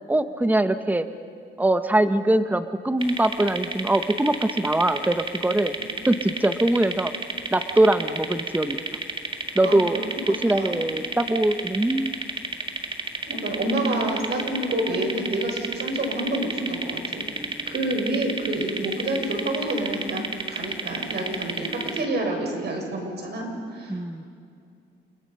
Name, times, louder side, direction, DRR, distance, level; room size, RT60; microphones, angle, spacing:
voice 1, 0.1-1.1 1.6-5.8 6.1-7.1 7.5-8.8 9.5-10.0 10.3-12.1 17.1-17.7 23.9-24.2, right 1 dB, 10° right, 9 dB, 1.2 m, -22 dB
sound 1, 3.0-22.1, right 3 dB, 25° right, 2.1 m, -32 dB
voice 2, 9.6-10.0 10.5-10.8 13.3-17.2 17.7-20.2 20.5-24.0, right 1 dB, 55° right, 2 dB, 6.8 m, -28 dB
29.5 x 29.0 x 5.8 m, 2.4 s
cardioid pair, 90°, 20 cm